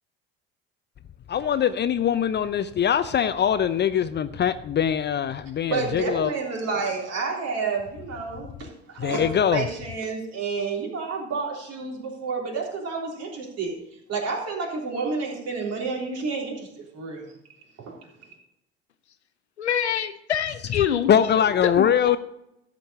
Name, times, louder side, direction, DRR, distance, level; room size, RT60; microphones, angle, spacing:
voice 1, 1.3-6.3 9.0-9.6 21.1-22.2, left 9 dB, 35° left, 13 dB, 0.6 m, -22 dB
voice 2, 5.7-13.8 14.1-17.3, right 4 dB, 50° right, -1 dB, 3.6 m, -30 dB
voice 3, 19.6-21.1 21.6-22.2, left 9 dB, 90° left, 11 dB, 0.7 m, -26 dB
13.0 x 5.2 x 6.9 m, 0.82 s
hypercardioid pair, 60°, 32 cm